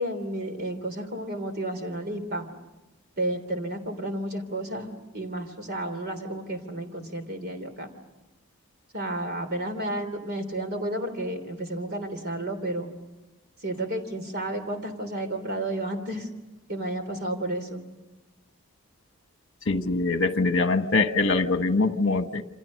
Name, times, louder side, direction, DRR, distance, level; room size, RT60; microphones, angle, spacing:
voice 1, 0.0-2.5 3.2-7.9 8.9-12.9 13.6-16.3 16.7-17.8, right 1 dB, 45° right, 7 dB, 3.3 m, -32 dB
voice 2, 19.6-22.4, left 3 dB, 55° left, 8 dB, 1.4 m, -23 dB
28.5 x 26.0 x 6.5 m, 1.1 s
head